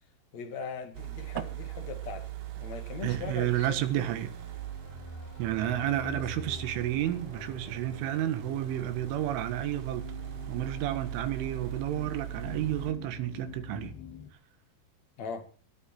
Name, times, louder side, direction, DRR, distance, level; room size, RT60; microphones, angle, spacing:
voice 1, 0.3-2.3 2.6-4.1 5.6-6.3 15.2-15.5, left 6 dB, 45° left, 2.9 m, -40 dB
sound 1, 0.9-12.9, right 10 dB, 60° right, 2.6 m, -41 dB
voice 2, 3.0-4.3 5.4-10.1 10.5-14.0, right 12 dB, 85° right, 4.0 m, -31 dB
sound 2, 4.0-14.3, left 8 dB, 60° left, 4.0 m, -48 dB
19.5 x 13.0 x 4.5 m
omnidirectional pair, 5.5 m